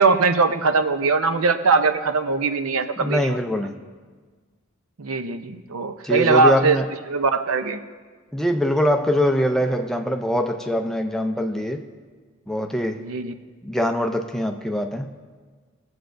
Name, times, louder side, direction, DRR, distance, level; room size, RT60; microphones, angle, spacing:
voice 1, 0.0-3.4 5.0-6.8 7.1-7.8 13.0-13.3, right 4 dB, 85° right, 9 dB, 0.6 m, -21 dB
voice 2, 3.0-3.7 6.0-6.8 8.3-11.8 12.5-13.0 13.6-15.1, equal, ahead, 5 dB, 0.5 m, -23 dB
21.0 x 7.8 x 2.6 m, 1.5 s
head